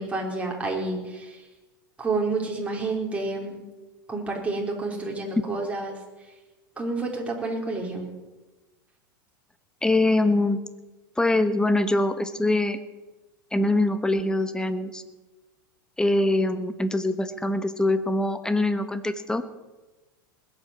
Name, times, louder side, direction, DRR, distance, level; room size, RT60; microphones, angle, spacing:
voice 1, 0.0-1.4 2.0-3.6 4.1-6.0 6.8-8.1, right 3 dB, 10° right, -1 dB, 4.4 m, -29 dB
voice 2, 9.8-10.6 11.2-12.8 13.5-15.0 16.0-19.4, left 2 dB, 5° left, 11 dB, 1.4 m, -23 dB
20.0 x 8.7 x 7.5 m, 1.2 s
hypercardioid pair, 100°, 11 cm